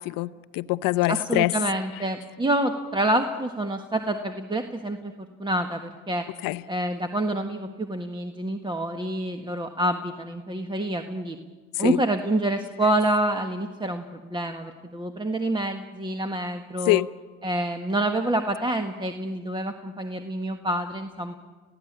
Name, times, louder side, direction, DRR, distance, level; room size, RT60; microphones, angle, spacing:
voice 1, 0.0-1.5 6.4-6.6 11.8-12.0 16.9-17.1, left 19 dB, 80° left, 0.8 m, -24 dB
voice 2, 1.1-6.3 6.7-11.4 11.8-17.0 17.4-21.4, right 1 dB, 15° right, 1.4 m, -27 dB
28.0 x 16.5 x 8.7 m
supercardioid pair, 95°, 33 cm